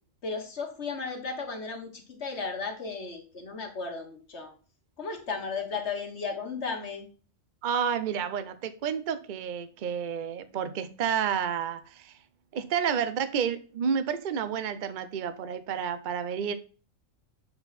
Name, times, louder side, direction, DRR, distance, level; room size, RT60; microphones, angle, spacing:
voice 1, 0.2-4.5 5.0-7.1, left 4 dB, 55° left, 1.7 m, -35 dB
voice 2, 7.6-12.1 12.5-16.5, right 7 dB, 45° right, 0.7 m, -30 dB
7.9 x 4.6 x 4.1 m
omnidirectional pair, 1.3 m